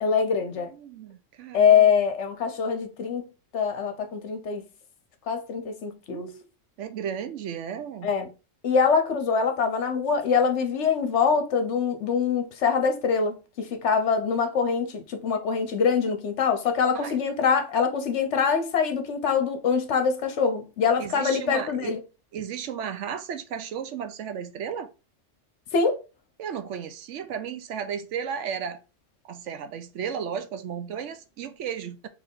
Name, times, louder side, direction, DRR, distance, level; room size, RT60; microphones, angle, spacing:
voice 1, 0.0-0.7 1.5-3.2 3.5-4.6 5.3-6.3 8.0-8.3 8.6-22.0 25.7-26.0, left 6 dB, 65° left, 1.1 m, -24 dB
voice 2, 0.7-1.9 6.1-6.5 6.8-8.1 16.9-17.2 21.0-22.0 22.3-24.9 26.4-28.8 29.3-32.1, right 7 dB, 75° right, 0.9 m, -34 dB
4.3 x 2.9 x 3.7 m
omnidirectional pair, 1.3 m